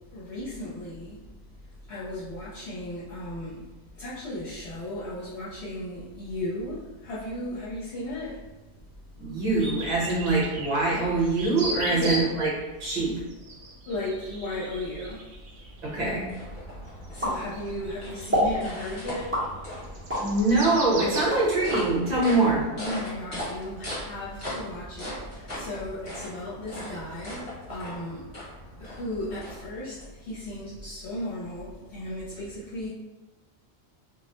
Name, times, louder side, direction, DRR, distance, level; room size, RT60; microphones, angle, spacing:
voice 1, 0.1-1.2 1.9-3.7 4.0-8.4 11.9-12.3 13.9-15.2 17.1-19.3 22.7-28.3 28.8-32.9, left 1 dB, 70° left, -9 dB, 0.9 m, -35 dB
voice 2, 9.2-13.1 15.8-16.3 20.2-22.6, right 2 dB, 40° right, -6 dB, 0.9 m, -24 dB
sound 1, 9.6-12.5 12.9-21.3, right 2 dB, 75° right, 0.9 m, -38 dB
sound 2, 15.6-30.1, equal, 30° left, 0.9 m, -40 dB
sound 3, 17.2-17.9 18.3-18.6 19.3-20.3 20.8-21.9, equal, 15° right, 0.5 m, -27 dB
2.3 x 2.0 x 2.8 m, 1.1 s
omnidirectional pair, 1.2 m